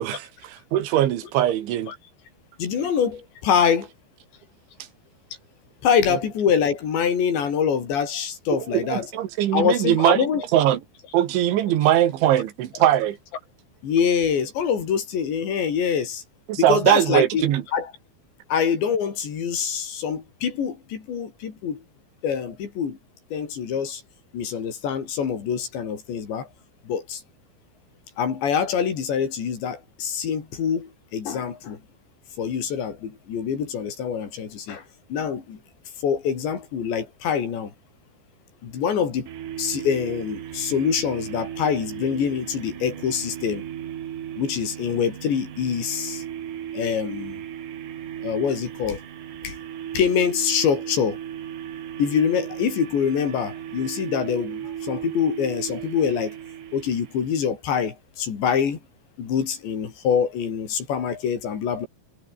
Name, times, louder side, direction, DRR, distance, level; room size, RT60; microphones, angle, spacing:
voice 1, 0.0-1.9 8.7-10.2 10.5-10.8 11.1-13.2 16.5-17.6, right 12 dB, 80° right, 4.2 m, -21 dB
voice 2, 2.6-3.9 5.8-9.1 9.5-10.4 13.8-16.2 16.6-17.5 17.7-17.9 18.5-21.8 22.2-23.0 23.3-24.0 24.3-26.5 26.9-27.2 28.2-31.8 32.4-34.8 35.1-35.6 36.0-37.7 38.6-39.3 39.6-43.6 44.4-46.2 46.7-47.4 48.2-49.0 49.4-49.6 49.9-51.2 52.0-56.3 56.7-58.8 59.2-61.9, left 7 dB, 70° left, 6.3 m, -25 dB
sound 1, 39.3-57.5, right 10 dB, 55° right, 2.7 m, -36 dB
omnidirectional pair, 5.3 m